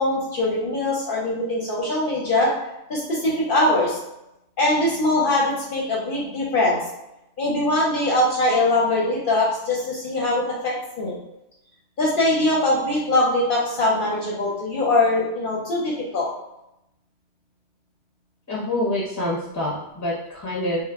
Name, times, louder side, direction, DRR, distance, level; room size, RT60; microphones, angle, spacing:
voice 1, 0.0-2.5 2.9-4.0 4.6-6.8 7.4-11.2 12.0-16.3, left 2 dB, 55° left, -5 dB, 0.7 m, -22 dB
voice 2, 18.5-20.8, left 1 dB, 20° left, -5 dB, 0.6 m, -26 dB
2.1 x 2.0 x 3.4 m, 0.87 s
omnidirectional pair, 1.2 m